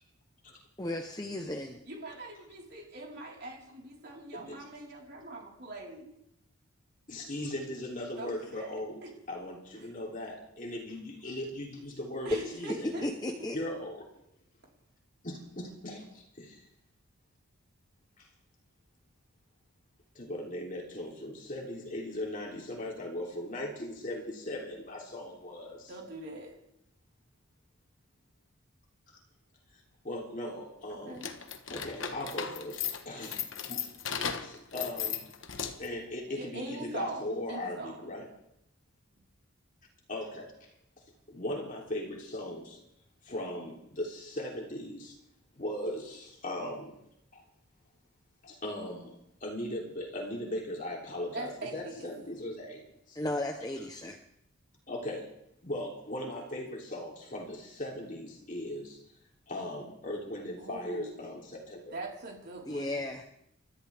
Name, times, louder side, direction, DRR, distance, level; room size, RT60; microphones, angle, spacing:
voice 1, 0.8-1.8 12.7-13.6 53.1-54.2 62.6-63.2, left 1 dB, 15° left, 3 dB, 0.9 m, -34 dB
voice 2, 1.8-6.1 8.2-8.7 9.0-9.1 9.7-9.9 12.2-13.1 25.9-26.5 30.9-31.3 36.3-38.0 51.3-52.1 60.6-61.2 61.9-63.0, right 2 dB, 50° right, -2 dB, 4.4 m, -42 dB
voice 3, 4.3-4.6 7.1-9.0 9.3-13.0 13.5-14.1 15.2-16.6 18.2-18.3 20.1-25.9 30.0-31.2 31.7-33.4 33.7-33.9 34.2-35.3 35.8-38.3 40.1-40.5 41.3-42.8 43.2-45.2 45.5-46.9 47.3-47.4 48.4-49.1 49.4-53.2 54.9-55.3 55.6-59.0 59.5-61.9, left 1 dB, 35° left, -1 dB, 3.3 m, -38 dB
sound 1, 31.1-36.0, left 8 dB, 60° left, 1.3 m, -36 dB
29.0 x 13.5 x 3.6 m, 0.77 s
head